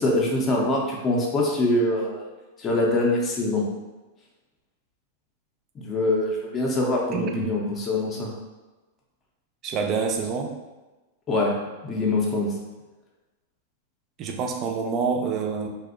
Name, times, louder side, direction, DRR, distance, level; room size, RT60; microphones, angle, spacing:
voice 1, 0.0-2.3 2.6-3.6 5.8-8.3 11.3-11.6 11.8-12.5, left 2 dB, 25° left, -2 dB, 0.5 m, -24 dB
voice 2, 7.1-7.5 9.6-10.5 14.2-15.7, right 5 dB, 40° right, 2 dB, 0.4 m, -27 dB
2.6 x 2.0 x 2.4 m, 1.2 s
hypercardioid pair, 105°, 0 cm